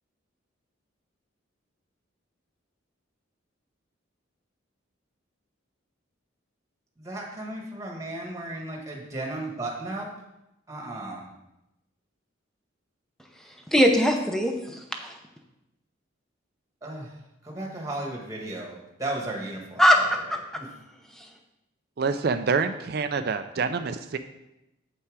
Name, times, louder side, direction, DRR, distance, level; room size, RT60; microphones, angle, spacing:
voice 1, 7.0-10.1 10.7-11.2 16.8-17.1 17.4-20.1 20.5-20.7, right 2 dB, 15° right, -1 dB, 1.4 m, -35 dB
voice 2, 13.7-15.1 19.8-20.4, equal, ahead, 3 dB, 0.7 m, -21 dB
voice 3, 22.0-24.2, right 5 dB, 50° right, 9 dB, 0.4 m, -26 dB
7.8 x 5.7 x 4.8 m, 0.90 s
head